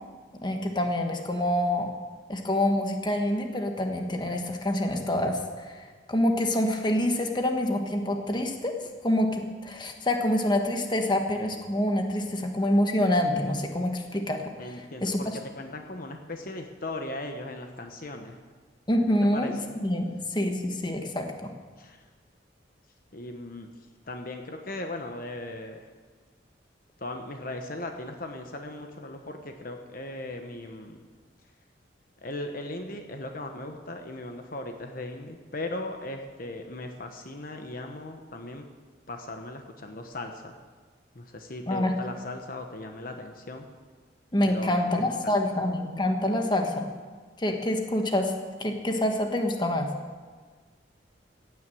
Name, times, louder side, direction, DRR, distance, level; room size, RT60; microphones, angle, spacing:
voice 1, 0.4-1.9 2.3-8.8 9.0-15.3 18.9-19.5 19.8-21.5 41.7-41.9 44.3-46.9 47.4-48.3 48.6-49.9, left 1 dB, 25° left, 4 dB, 1.3 m, -26 dB
voice 2, 14.6-15.3 15.5-18.4 19.1-19.7 21.8-22.0 23.1-23.7 24.1-25.9 27.0-31.0 32.2-38.6 39.1-40.6 41.1-43.7 44.4-45.4, left 2 dB, 50° left, 5 dB, 1.1 m, -38 dB
16.5 x 9.4 x 7.8 m, 1.5 s
head